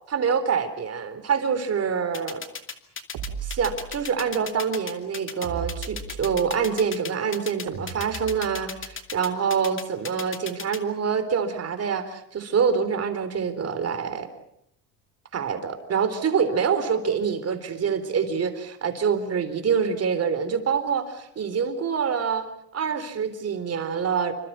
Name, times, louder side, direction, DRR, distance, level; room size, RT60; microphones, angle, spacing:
voice 1, 0.1-2.4 3.4-14.3 15.3-22.5 22.7-24.3, right 6 dB, 35° right, 10 dB, 3.9 m, -26 dB
sound 1, 2.1-10.8, left 6 dB, 30° left, 2.6 m, -35 dB
sound 2, 3.1-4.2 5.4-6.7 7.7-8.9, right 7 dB, 60° right, 5.9 m, -37 dB
28.0 x 26.0 x 5.7 m, 0.75 s
cardioid pair, 125°, 43 cm